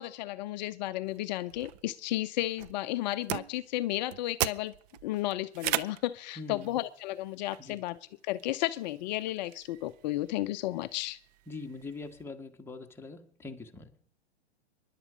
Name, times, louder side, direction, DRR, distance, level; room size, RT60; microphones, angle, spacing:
voice 1, 0.0-4.7 5.0-8.0 8.2-11.2, left 16 dB, 45° left, 12 dB, 0.7 m, -33 dB
sound 1, 1.1-12.2, right 14 dB, 40° right, 0.6 m, -40 dB
voice 2, 6.4-6.8 7.6-7.8 11.5-13.9, left 3 dB, 5° left, 3 dB, 1.5 m, -43 dB
24.0 x 11.5 x 5.0 m, 0.62 s
hypercardioid pair, 125°, 32 cm